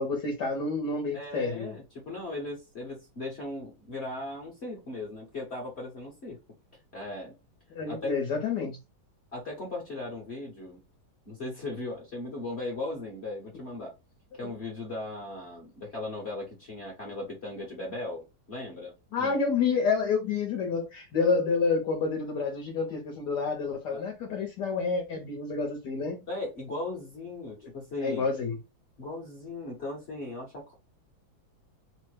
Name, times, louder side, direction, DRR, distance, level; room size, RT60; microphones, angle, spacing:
voice 1, 0.0-1.7 7.7-8.8 19.1-26.2 28.0-28.6, left 4 dB, 65° left, 1.2 m, -29 dB
voice 2, 1.1-6.4 6.9-7.3 7.9-8.2 9.3-10.8 11.2-13.9 14.3-18.9 19.2-19.3 23.9-24.1 26.3-28.2 29.0-30.7, left 2 dB, 45° left, 0.9 m, -37 dB
3.4 x 2.1 x 3.2 m
omnidirectional pair, 2.2 m